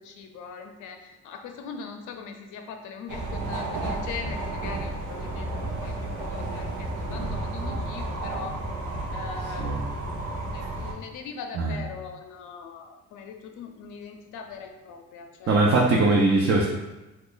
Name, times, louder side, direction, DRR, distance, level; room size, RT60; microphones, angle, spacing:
voice 1, 0.0-8.6 9.1-16.1, left 6 dB, 80° left, 5 dB, 0.5 m, -41 dB
sound 1, 3.1-10.9, right 2 dB, 90° right, 0.7 m, -32 dB
voice 2, 15.5-16.7, right 2 dB, 45° right, -2 dB, 0.5 m, -21 dB
3.0 x 2.3 x 3.8 m, 1.0 s
cardioid pair, 90°, 30 cm